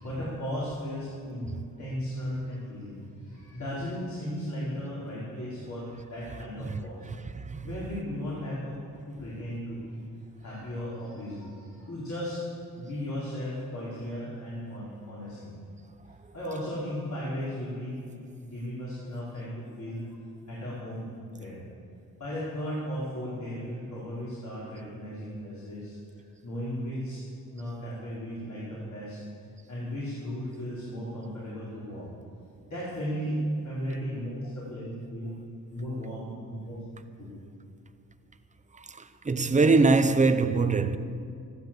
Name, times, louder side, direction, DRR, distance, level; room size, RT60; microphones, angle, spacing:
voice 1, 0.0-7.1 7.6-8.8 9.0-10.0 10.4-12.5 12.8-15.5 16.3-18.0 18.4-20.2 20.5-21.6 22.2-26.0 26.4-27.2 27.5-29.2 29.7-32.1 32.7-35.3 35.7-36.8 37.2-37.3, equal, 60° left, 4.5 m, -36 dB
voice 2, 39.3-41.0, right 3 dB, 20° right, 0.7 m, -21 dB
15.5 x 12.5 x 7.6 m
wide cardioid pair, 140°, 34 cm